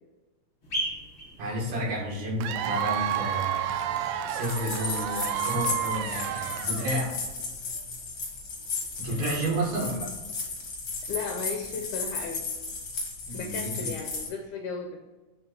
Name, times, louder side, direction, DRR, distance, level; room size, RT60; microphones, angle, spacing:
sound 1, 0.6-6.5, right 1 dB, 25° left, 1.2 m, -41 dB
voice 1, 1.4-7.1 9.0-10.1 13.3-14.0, right 1 dB, 65° right, -3 dB, 3.2 m, -31 dB
Cheering / Applause / Crowd, 2.4-7.1, right 11 dB, 80° right, 2.1 m, -31 dB
sound 2, 4.4-14.3, left 3 dB, 55° left, 1.4 m, -34 dB
voice 2, 11.1-12.5 13.3-14.9, left 4 dB, 75° left, 4 dB, 1.9 m, -35 dB
7.7 x 3.7 x 4.7 m, 1.2 s
omnidirectional pair, 4.2 m